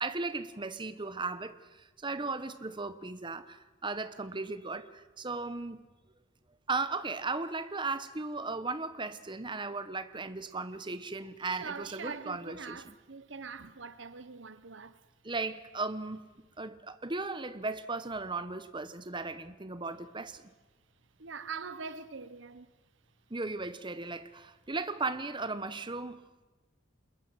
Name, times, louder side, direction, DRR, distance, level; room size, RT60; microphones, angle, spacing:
voice 1, 0.0-5.8 6.7-12.9 15.2-16.2 16.6-20.5 23.3-26.3, right 3 dB, 25° right, 1.1 m, -36 dB
voice 2, 11.4-15.0 21.2-22.7, right 5 dB, 65° right, 1.1 m, -43 dB
28.0 x 21.0 x 7.9 m
head